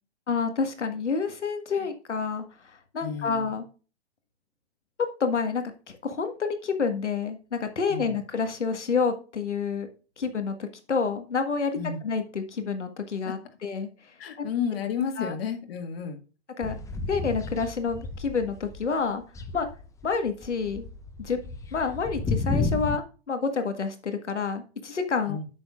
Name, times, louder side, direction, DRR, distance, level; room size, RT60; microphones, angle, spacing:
voice 1, 0.3-3.7 5.2-9.9 10.2-11.7 12.0-13.9 14.4-14.5 15.2-15.3 16.6-16.8 17.1-19.2 19.5-19.7 20.0-20.8 21.2-21.4 21.7-25.4, left 5 dB, 85° left, 1.6 m, -28 dB
voice 2, 3.0-3.5 7.9-8.2 11.7-12.0 13.3-13.4 14.2-16.2 25.3-25.4, left 7 dB, 55° left, 1.9 m, -31 dB
sound 1, 16.6-18.9 19.2-23.0, left 3 dB, 10° left, 0.6 m, -32 dB
10.5 x 7.1 x 2.5 m
hypercardioid pair, 120°, 34 cm